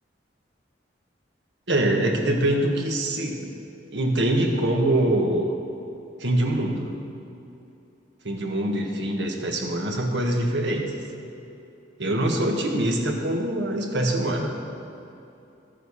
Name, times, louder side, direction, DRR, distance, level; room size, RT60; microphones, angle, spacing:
voice 1, 1.7-3.5 3.9-5.6 6.2-7.0 8.2-10.9 12.0-14.6, right 1 dB, 85° right, 1 dB, 1.6 m, -24 dB
13.5 x 7.4 x 7.1 m, 2.9 s
head